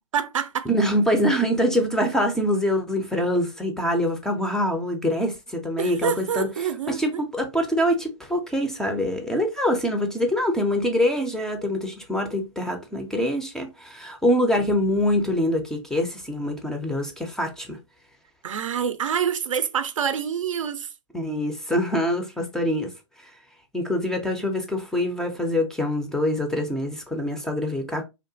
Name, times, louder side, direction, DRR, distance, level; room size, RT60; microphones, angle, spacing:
voice 1, 0.1-0.7 5.8-7.0 18.4-20.9, right 8 dB, 85° right, 0.4 m, -26 dB
voice 2, 0.7-6.5 6.9-17.8 21.1-22.9 23.2-23.3 23.7-28.0, equal, 5° left, 0.3 m, -24 dB
2.7 x 2.1 x 2.5 m
hypercardioid pair, 125°, 16 cm